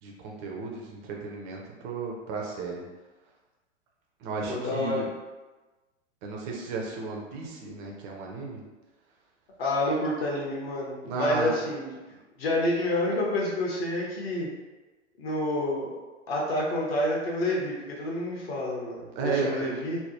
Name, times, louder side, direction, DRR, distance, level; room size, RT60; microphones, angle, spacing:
voice 1, 0.0-2.8 4.2-5.1 6.2-8.6 11.0-11.5 19.2-19.7, right 4 dB, 25° right, -1 dB, 0.5 m, -33 dB
voice 2, 4.5-5.0 9.6-11.9 12.4-14.5 15.2-15.9 16.3-20.0, left 1 dB, 55° left, -3 dB, 1.0 m, -28 dB
3.3 x 2.1 x 2.8 m, 1.2 s
figure-of-eight pair, 100°, 36 cm